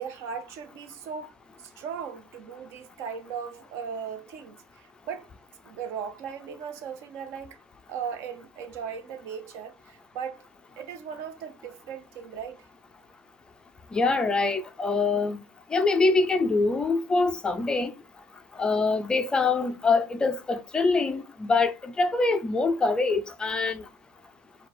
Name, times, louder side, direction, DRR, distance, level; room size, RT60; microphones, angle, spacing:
voice 1, 0.0-1.3 1.6-5.3 5.6-7.6 7.9-10.4 10.8-12.6, right 7 dB, 55° right, 0.8 m, -37 dB
voice 2, 13.9-15.4 15.7-17.9 18.6-23.8, left 3 dB, 15° left, 0.4 m, -24 dB
4.7 x 2.3 x 4.2 m
cardioid pair, 160°, 6 cm